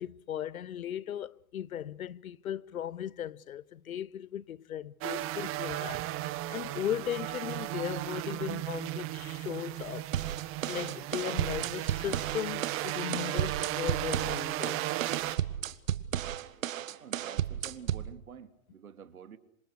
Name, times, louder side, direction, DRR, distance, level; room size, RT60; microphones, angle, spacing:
voice 1, 0.0-6.1 6.5-10.1 10.7-15.0, left 10 dB, 80° left, 1.1 m, -37 dB
sound 1, 5.0-15.4, right 16 dB, 30° right, 1.6 m, -35 dB
sound 2, 10.1-18.1, right 11 dB, 65° right, 1.8 m, -33 dB
voice 2, 17.0-19.4, right 7 dB, 80° right, 2.9 m, -48 dB
27.5 x 26.0 x 6.5 m
hypercardioid pair, 125°, 42 cm